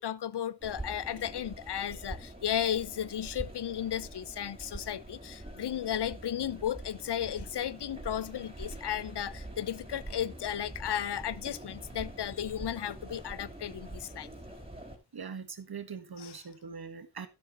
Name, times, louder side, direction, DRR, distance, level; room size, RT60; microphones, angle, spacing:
voice 1, 0.0-14.3 16.2-16.4, left 10 dB, 80° left, 0.7 m, -34 dB
sound 1, 0.6-15.0, right 1 dB, 15° right, 4.0 m, -45 dB
voice 2, 15.1-17.3, right 6 dB, 65° right, 1.7 m, -42 dB
12.0 x 12.0 x 2.6 m
wide cardioid pair, 65°, 40 cm